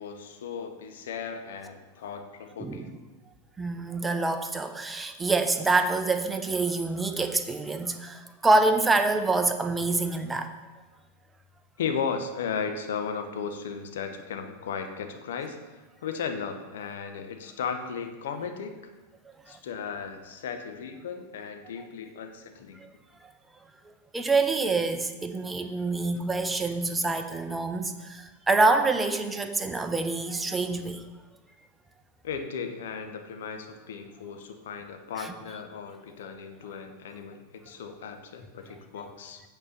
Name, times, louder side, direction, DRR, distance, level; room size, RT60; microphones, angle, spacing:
voice 1, 0.0-2.9 11.8-18.9 19.5-22.8 32.2-39.4, left 6 dB, 60° left, 6 dB, 1.0 m, -36 dB
voice 2, 3.6-10.5 21.8-21.9 22.8-22.9 23.2-23.3 23.9-31.0 35.2-35.3, right 3 dB, 10° right, 7 dB, 0.7 m, -26 dB
8.7 x 4.4 x 6.7 m, 1.2 s
figure-of-eight pair, 90°, 0 cm